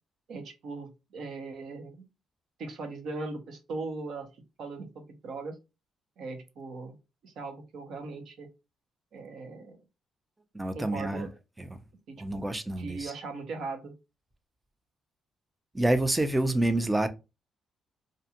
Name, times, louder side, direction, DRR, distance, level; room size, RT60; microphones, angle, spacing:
voice 1, 0.3-2.0 2.6-4.3 4.6-5.6 6.2-6.9 7.2-8.5 9.1-9.8 10.7-11.3 12.1-12.4 12.8-13.9, right 3 dB, 70° right, 0.8 m, -39 dB
voice 2, 10.5-11.3 11.6-11.7 12.2-13.1 15.7-17.1, right 1 dB, 10° right, 0.5 m, -27 dB
2.6 x 2.3 x 2.8 m
cardioid pair, 90°, 0 cm